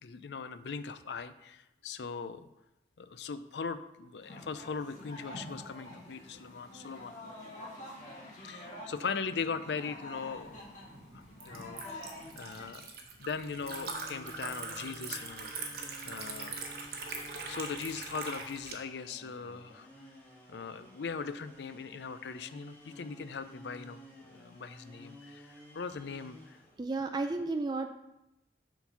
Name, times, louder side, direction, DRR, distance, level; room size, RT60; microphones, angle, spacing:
voice 1, 0.0-2.5 3.0-7.2 8.4-10.7 11.1-12.9 13.2-16.6 17.5-19.9 20.5-26.6, left 5 dB, 75° left, 12 dB, 0.5 m, -40 dB
sound 1, 4.2-12.7, left 1 dB, 45° left, 1.7 m, -47 dB
Liquid, 10.4-18.7, right 4 dB, 60° right, 1.0 m, -42 dB
sound 2, 13.6-26.8, left 1 dB, 10° left, 1.4 m, -53 dB
voice 2, 26.8-27.9, right 3 dB, 25° right, 6 dB, 0.3 m, -32 dB
7.0 x 3.9 x 5.6 m, 0.89 s
head